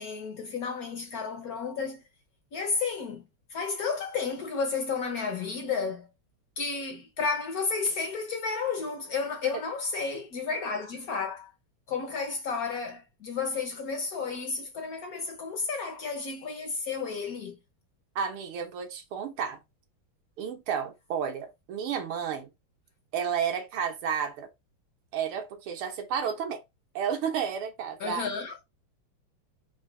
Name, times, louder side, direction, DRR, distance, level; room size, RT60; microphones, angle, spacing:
voice 1, 0.0-2.0 2.5-3.2 3.5-6.1 6.6-11.5 11.9-17.6 28.0-28.6, left 5 dB, 65° left, 0.9 m, -32 dB
voice 2, 18.2-19.6 20.4-22.5 23.1-24.5 25.1-26.6 27.0-28.3, right 7 dB, 85° right, 1.8 m, -31 dB
4.4 x 2.5 x 3.6 m
omnidirectional pair, 2.3 m